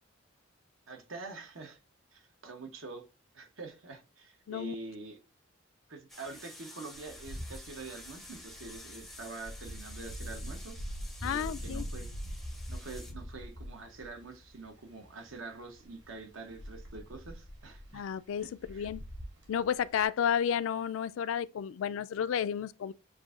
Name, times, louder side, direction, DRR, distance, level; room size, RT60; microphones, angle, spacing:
voice 1, 0.9-1.8 2.1-3.1 3.3-5.2 5.9-10.7 11.2-12.1 12.7-18.1 18.4-18.9, right 3 dB, 85° right, 1.0 m, -46 dB
sound 1, 6.1-13.1, left 1 dB, ahead, 0.4 m, -50 dB
Wind, 6.9-20.1, equal, 60° right, 1.6 m, -44 dB
voice 2, 11.2-11.8 17.9-19.0 19.5-22.9, left 8 dB, 80° left, 0.3 m, -32 dB
7.1 x 2.6 x 2.4 m
head